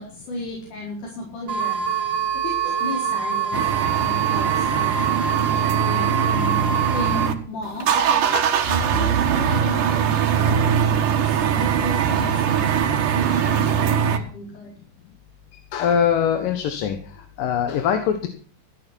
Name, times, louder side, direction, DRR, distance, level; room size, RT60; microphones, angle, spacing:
voice 1, 0.0-6.6 6.9-8.3 8.7-14.7, left 1 dB, 70° left, -3 dB, 6.0 m, -35 dB
sound 1, 1.5-7.3, right 8 dB, 40° right, 3.1 m, -24 dB
sound 2, 3.5-7.3 7.6-14.2, right 8 dB, 70° right, 2.9 m, -21 dB
voice 2, 15.7-17.0 17.4-18.3, left 8 dB, 90° left, 7 dB, 3.0 m, -22 dB
15.0 x 10.0 x 6.3 m, 0.43 s
omnidirectional pair, 3.8 m